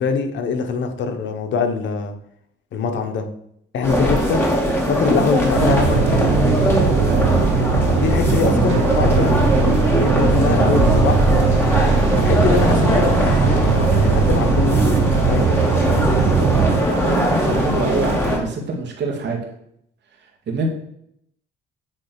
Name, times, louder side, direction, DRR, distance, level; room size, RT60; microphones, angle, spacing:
voice 1, 0.0-2.1 2.7-3.3 3.7-4.4 4.9-6.3 8.0-11.3 12.2-15.5, left 5 dB, 70° left, 5 dB, 1.2 m, -23 dB
sound 1, 3.8-18.4, equal, 10° left, 2.1 m, -20 dB
sound 2, 5.5-16.8, right 5 dB, 85° right, 1.0 m, -19 dB
voice 2, 16.9-19.4 20.5-20.7, right 3 dB, 60° right, 1 dB, 2.0 m, -24 dB
8.7 x 3.3 x 5.9 m, 0.72 s
cardioid pair, 90°, 20 cm